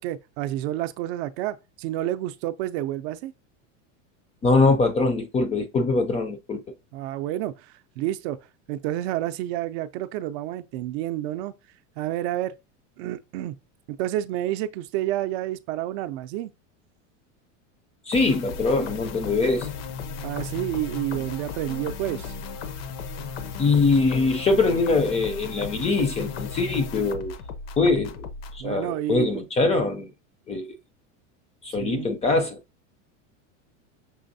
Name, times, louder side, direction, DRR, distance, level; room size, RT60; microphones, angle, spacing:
voice 1, 0.0-3.3 6.9-8.4 8.7-11.5 12.0-12.5 13.0-13.5 13.9-16.5 20.2-22.3 28.6-29.3 31.8-32.1, right 13 dB, 55° right, 0.5 m, -29 dB
voice 2, 4.4-6.6 18.1-19.7 23.6-27.3 27.8-28.3 28.5-30.1 30.5-30.7 31.6-32.6, left 3 dB, 15° left, 0.4 m, -23 dB
sound 1, 18.1-28.6, left 5 dB, 65° left, 0.8 m, -35 dB
6.2 x 3.2 x 2.6 m
supercardioid pair, 135°, 38 cm